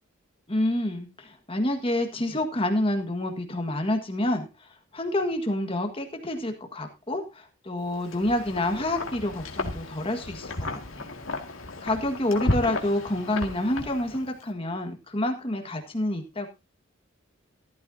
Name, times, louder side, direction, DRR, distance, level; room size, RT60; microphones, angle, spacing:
voice 1, 0.5-11.1 11.8-16.5, left 1 dB, 25° left, 5 dB, 1.6 m, -28 dB
Wind, 7.9-14.4, left 2 dB, 90° left, 2.1 m, -34 dB
15.0 x 13.5 x 2.7 m, 0.26 s
head